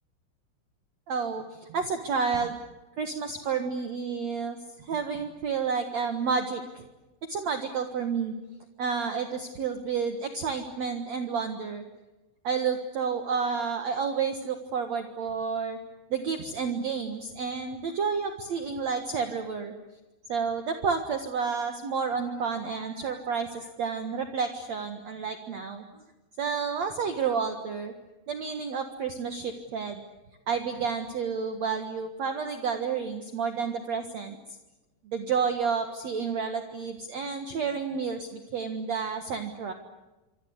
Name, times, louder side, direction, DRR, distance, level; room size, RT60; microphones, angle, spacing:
voice 1, 1.1-2.6 3.0-6.9 7.3-8.3 8.8-11.8 12.4-15.8 16.1-19.7 20.3-25.8 26.4-27.9 28.3-30.0 30.5-34.4 35.0-39.7, right 5 dB, 65° right, 6 dB, 1.7 m, -30 dB
26.0 x 26.0 x 8.1 m, 1.1 s
omnidirectional pair, 5.6 m